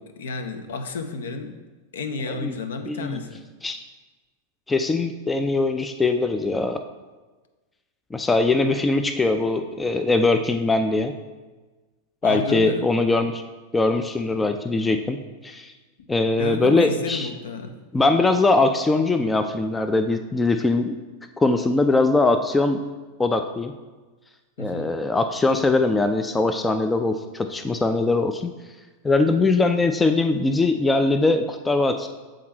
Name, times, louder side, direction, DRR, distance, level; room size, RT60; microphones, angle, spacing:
voice 1, 0.2-1.5 1.9-3.4 12.2-12.9 16.4-17.7 24.6-24.9, left 4 dB, 60° left, 6 dB, 0.7 m, -31 dB
voice 2, 2.9-3.2 3.6-3.8 4.7-6.8 8.1-11.2 12.2-13.4 13.7-15.7 16.1-17.3 17.9-21.0 21.4-22.8 23.2-23.7 24.6-28.5 29.0-32.1, left 3 dB, 10° left, 8 dB, 0.4 m, -21 dB
7.5 x 3.8 x 4.3 m, 1.3 s
figure-of-eight pair, 90°, 0 cm